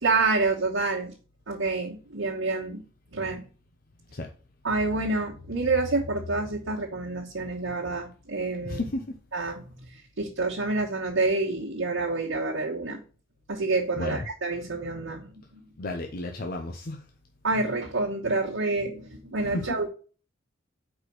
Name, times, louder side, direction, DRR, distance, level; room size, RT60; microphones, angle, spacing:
voice 1, 0.0-1.1 1.5-2.8 3.1-3.4 4.6-8.8 9.3-13.0 13.5-15.6 17.4-19.9, right 3 dB, 80° right, -5 dB, 1.4 m, -28 dB
voice 2, 8.6-9.1 14.0-14.3 15.8-17.0, left 2 dB, 50° left, 3 dB, 0.7 m, -32 dB
5.0 x 4.4 x 6.0 m, 0.38 s
head